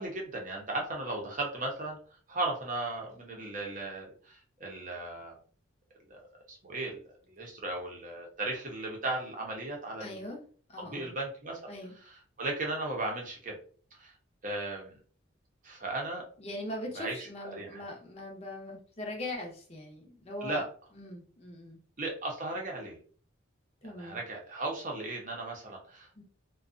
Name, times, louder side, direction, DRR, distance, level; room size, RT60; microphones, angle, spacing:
voice 1, 0.0-2.0 2.3-5.4 6.1-10.2 10.8-11.6 12.4-13.6 13.9-14.1 14.4-15.0 15.6-16.2 16.9-17.8 20.4-20.6 22.0-23.0 24.0-26.2, right 2 dB, 40° right, 0 dB, 0.7 m, -36 dB
voice 2, 10.0-10.4 10.7-11.2 11.7-12.0 16.4-20.6 20.9-21.8 23.8-24.2 26.2-26.3, left 1 dB, 30° left, 0 dB, 0.7 m, -41 dB
2.5 x 2.2 x 2.5 m, 0.43 s
head